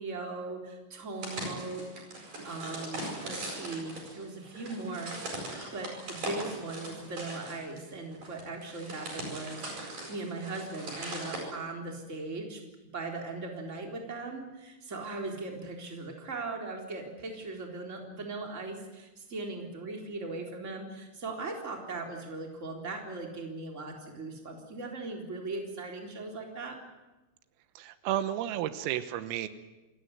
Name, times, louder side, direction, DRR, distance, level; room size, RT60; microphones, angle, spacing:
voice 1, 0.0-1.8 2.2-12.6 12.9-26.8, right 3 dB, 15° right, 1 dB, 3.5 m, -39 dB
sound 1, 1.2-11.4, right 2 dB, 40° right, 9.3 m, -40 dB
voice 2, 27.8-29.5, right 12 dB, 85° right, 11 dB, 3.8 m, -32 dB
28.5 x 16.0 x 9.6 m, 1.1 s
omnidirectional pair, 5.9 m